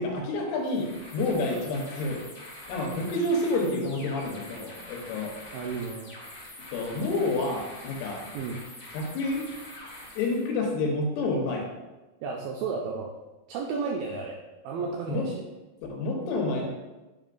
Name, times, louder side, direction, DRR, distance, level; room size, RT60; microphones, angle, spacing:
voice 1, 0.0-2.2 2.7-5.3 6.7-8.2 8.9-9.5 10.2-11.7 14.8-15.3 15.9-16.7, left 2 dB, 85° left, 1 dB, 3.0 m, -29 dB
sound 1, 0.6-10.5, left 1 dB, 50° left, 1.5 m, -45 dB
voice 2, 5.5-6.2 8.3-8.6 12.2-13.1 13.5-15.4, right 4 dB, 85° right, 1 dB, 2.0 m, -33 dB
7.0 x 5.5 x 2.5 m, 1.1 s
omnidirectional pair, 4.6 m